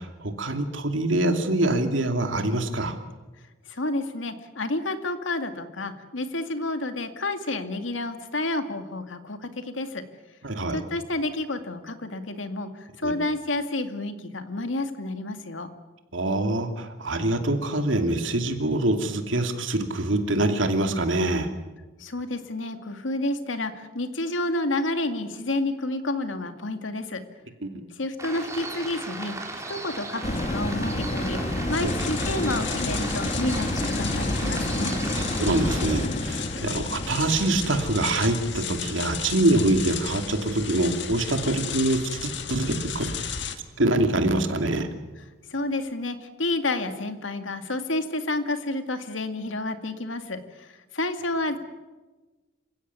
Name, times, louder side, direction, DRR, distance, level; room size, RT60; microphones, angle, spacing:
voice 1, 0.0-2.9 10.4-10.8 13.0-13.1 16.1-21.5 27.6-27.8 31.8-31.9 35.1-43.1 43.8-44.9, right 2 dB, 80° right, 6 dB, 2.7 m, -25 dB
voice 2, 3.7-10.0 10.7-15.7 22.0-27.2 28.0-29.4 29.7-35.0 45.5-51.6, left 2 dB, 85° left, 8 dB, 2.2 m, -30 dB
sound 1, 28.2-35.9, right 2 dB, 15° right, 3.6 m, -36 dB
sound 2, 30.2-40.9 41.3-41.4, left 1 dB, 35° left, 1.8 m, -31 dB
sound 3, 31.7-43.6, left 6 dB, 65° left, 1.8 m, -34 dB
28.0 x 16.0 x 9.6 m, 1.2 s
head